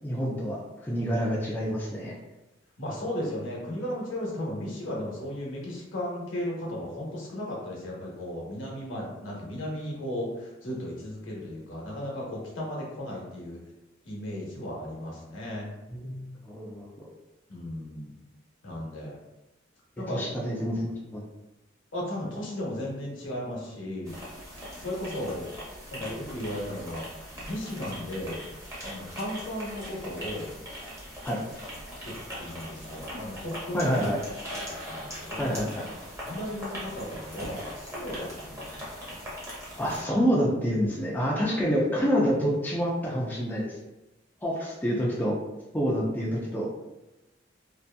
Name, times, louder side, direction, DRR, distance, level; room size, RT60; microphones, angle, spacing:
voice 1, 0.0-2.2 15.9-17.1 20.1-21.2 31.2-31.4 33.7-34.2 35.4-35.8 39.8-43.8 44.4-45.4 45.7-46.7, equal, 10° left, -5 dB, 0.4 m, -27 dB
voice 2, 2.8-13.6 14.0-15.7 17.5-18.2 18.6-19.2 20.0-20.8 21.9-24.1 24.8-25.5 25.9-27.0 27.5-28.4 28.8-30.5 32.0-34.0 34.9-35.5 36.2-38.9, left 1 dB, 75° left, -4 dB, 0.9 m, -35 dB
sound 1, 24.0-40.0, equal, 15° right, 0.7 m, -40 dB
2.7 x 2.5 x 2.2 m, 1.0 s
head